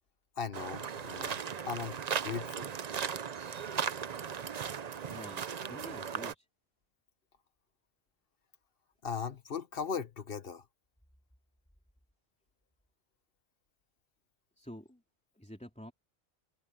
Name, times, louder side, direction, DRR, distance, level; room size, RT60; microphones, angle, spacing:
voice 1, 0.4-2.7 9.0-10.6, left 6 dB, 60° left, 1.5 m, -38 dB
sound 1, 0.5-6.3, right 7 dB, 45° right, 0.7 m, -37 dB
voice 2, 5.0-6.5 14.6-15.0 15.4-15.9, equal, 5° left, 3.2 m, -48 dB
omnidirectional pair, 1.1 m